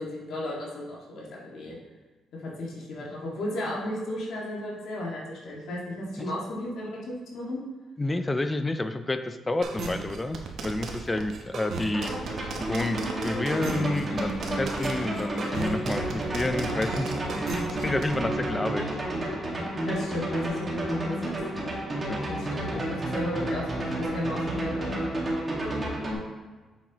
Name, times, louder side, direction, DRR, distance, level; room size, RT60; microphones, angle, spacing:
voice 1, 0.0-1.8 2.3-7.6 19.9-21.4 22.3-25.2, left 1 dB, 70° left, -4 dB, 1.8 m, -35 dB
voice 2, 8.0-12.1 12.6-18.9 22.1-22.2, left 2 dB, 20° left, 9 dB, 0.5 m, -30 dB
sound 1, 9.6-18.2, right 4 dB, 65° right, 1.0 m, -35 dB
sound 2, 11.9-26.1, right 1 dB, 30° right, 1.8 m, -31 dB
7.3 x 5.6 x 3.0 m, 1.3 s
cardioid pair, 90°, 0 cm